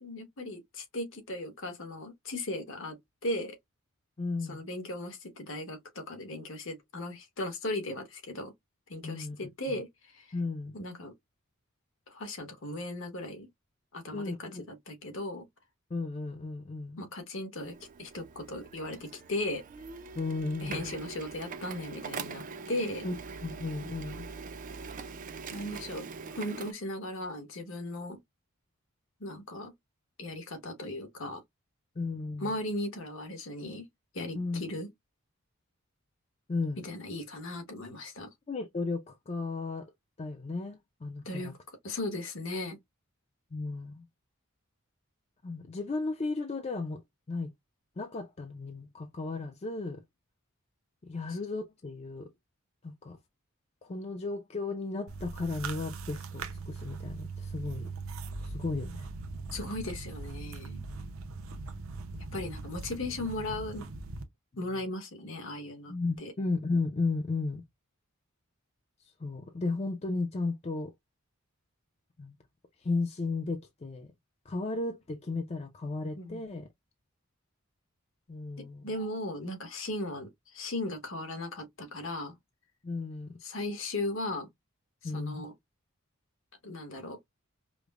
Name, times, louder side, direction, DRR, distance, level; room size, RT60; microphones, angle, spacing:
voice 1, 0.0-3.6 4.5-8.5 8.9-10.3 10.7-11.1 12.1-13.5 13.9-15.4 17.0-19.6 20.6-23.1 25.5-26.1 26.3-28.2 29.2-29.7 30.2-31.4 32.4-33.9 34.1-34.9 36.8-38.3 41.2-41.5 41.8-42.8 51.3-51.4 59.5-60.8 62.3-63.8 64.6-65.9 66.2-66.3 76.2-76.4 78.6-82.3 83.4-84.5 85.0-85.5 86.6-87.2, left 1 dB, 65° left, 1.2 m, -37 dB
voice 2, 4.2-4.6 9.0-9.4 10.3-10.8 14.1-14.7 15.9-17.0 20.2-20.9 23.0-24.3 32.0-32.5 34.3-34.6 36.5-36.8 38.5-39.9 40.2-41.5 43.5-44.0 45.4-47.0 47.3-47.5 48.0-50.0 51.0-52.3 52.8-53.2 53.8-57.9 58.4-59.1 65.9-67.6 69.0-70.9 72.2-72.4 72.8-74.1 74.5-76.7 78.3-78.8 82.8-83.3 85.0-85.5, left 3 dB, 30° left, 0.4 m, -34 dB
Printer, 17.6-26.7, right 5 dB, 40° right, 0.4 m, -43 dB
sound 1, 55.1-64.2, right 3 dB, 80° right, 0.6 m, -40 dB
5.0 x 2.0 x 2.3 m
head